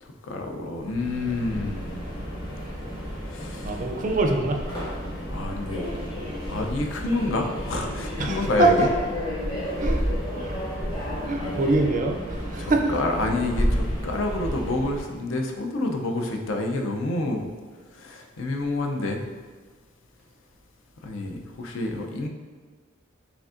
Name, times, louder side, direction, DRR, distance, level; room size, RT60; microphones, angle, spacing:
voice 1, 0.0-2.0 3.3-3.8 5.3-5.9 6.5-8.9 11.4-11.7 12.6-17.5 18.0-19.2 21.0-22.3, left 2 dB, 75° left, 3 dB, 0.5 m, -28 dB
Subway metro underground, 0.8-15.1, equal, 20° left, 0.8 m, -31 dB
voice 2, 3.6-4.6 8.2-8.9 9.8-10.0 10.4-10.5 11.3-12.8, right 2 dB, 40° right, 3 dB, 0.4 m, -24 dB
5.0 x 3.4 x 2.4 m, 1.4 s
head